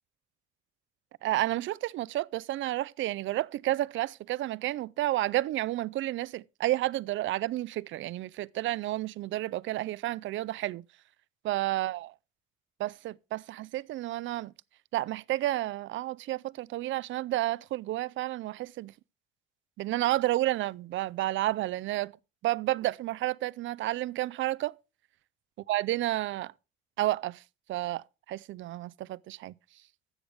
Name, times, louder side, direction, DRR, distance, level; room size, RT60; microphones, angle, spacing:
voice 1, 1.2-10.8 11.4-12.1 12.8-14.5 14.9-18.9 19.8-22.1 22.4-24.8 25.7-26.5 27.0-27.4 27.7-29.5, right 16 dB, 65° right, 0.5 m, -31 dB
13.5 x 7.9 x 3.3 m
cardioid pair, 85°, 21 cm